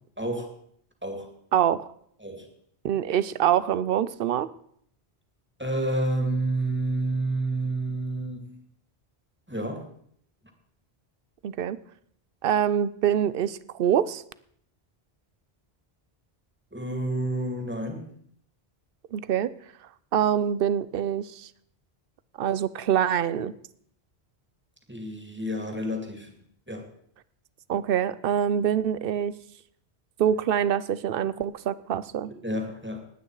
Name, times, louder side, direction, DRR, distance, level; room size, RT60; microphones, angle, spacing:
voice 1, 0.2-0.5 1.0-1.3 2.2-2.5 5.6-8.5 9.5-9.9 16.7-18.1 24.9-26.3 26.7-26.9 32.4-33.0, right 1 dB, 10° right, 3 dB, 2.3 m, -29 dB
voice 2, 1.5-1.9 2.8-4.5 11.4-11.8 12.4-14.2 19.1-19.5 20.1-21.5 22.4-23.5 27.7-29.4 30.2-32.3, right 9 dB, 65° right, 17 dB, 0.8 m, -25 dB
19.5 x 9.0 x 4.8 m, 0.67 s
omnidirectional pair, 1.1 m